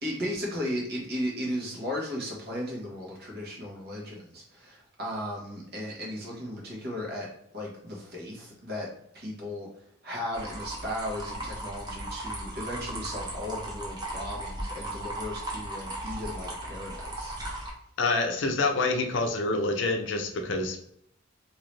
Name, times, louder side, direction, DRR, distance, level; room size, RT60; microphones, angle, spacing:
voice 1, 0.0-7.3 7.5-8.9 9.1-9.7 10.0-17.3, left 1 dB, 55° right, -3 dB, 1.4 m, -35 dB
sound 1, 10.3-17.7, right 1 dB, 20° right, 0.9 m, -37 dB
voice 2, 18.0-20.8, left 3 dB, 65° left, 5 dB, 0.6 m, -27 dB
3.7 x 2.9 x 3.2 m, 0.72 s
head